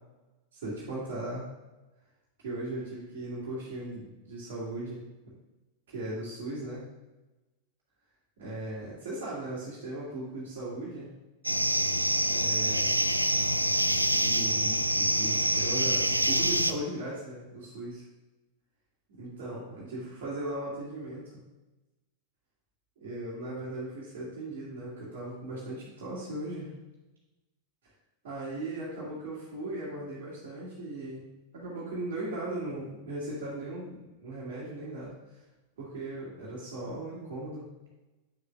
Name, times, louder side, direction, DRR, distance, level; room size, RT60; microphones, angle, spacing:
voice 1, 0.5-1.5 2.4-5.1 5.9-6.8 8.4-11.1 12.3-13.0 14.1-18.0 19.2-21.3 23.0-26.7 28.2-35.4 35.8-37.7, right 1 dB, 55° right, -8 dB, 2.2 m, -38 dB
sound 1, 11.4-16.7, right 1 dB, 85° right, 0.3 m, -26 dB
8.7 x 6.7 x 2.4 m, 1.1 s
figure-of-eight pair, 90°, 0 cm